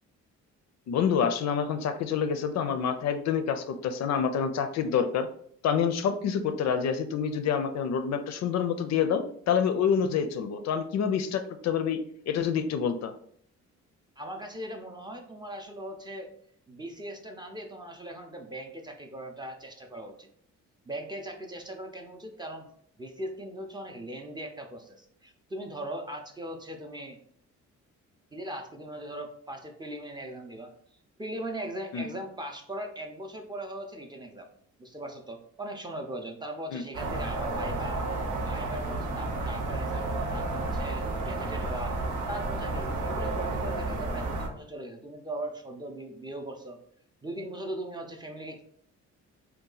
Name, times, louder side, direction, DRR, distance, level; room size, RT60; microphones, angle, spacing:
voice 1, 0.9-5.3 5.6-12.0 12.3-13.1 31.9-32.1 36.7-36.8, left 7 dB, 60° left, 9 dB, 0.4 m, -27 dB
voice 2, 14.2-16.3 16.7-20.3 20.9-22.7 23.0-27.2 28.3-30.7 31.2-34.5 34.8-38.0 38.4-42.0 42.3-46.8 47.2-48.6, right 1 dB, 15° right, 3 dB, 0.5 m, -39 dB
sound 1, 36.9-44.5, right 2 dB, 75° right, 0.9 m, -31 dB
2.8 x 2.3 x 3.8 m, 0.63 s
cardioid pair, 90°, 30 cm